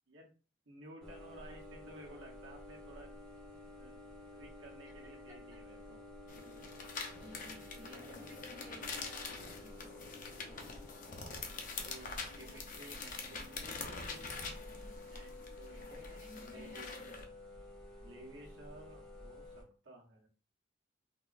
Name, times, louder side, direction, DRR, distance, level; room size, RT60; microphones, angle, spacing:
voice 1, 0.7-3.2 3.8-4.0 4.3-6.0 6.3-6.7 7.1-7.2 7.7-8.9 10.3-10.8 11.7-14.4 15.1-17.3 18.0-20.3, right 1 dB, 75° right, -1 dB, 1.0 m, -56 dB
sound 1, 1.0-19.6, left 1 dB, 5° left, 1.3 m, -52 dB
voice 2, 4.8-5.4 7.2-9.7 10.5-11.0 16.2-17.0 18.9-19.0, equal, 20° right, -4 dB, 1.0 m, -58 dB
sound 2, 6.3-17.2, left 4 dB, 40° left, 0.6 m, -45 dB
3.8 x 2.9 x 2.4 m, 0.36 s
head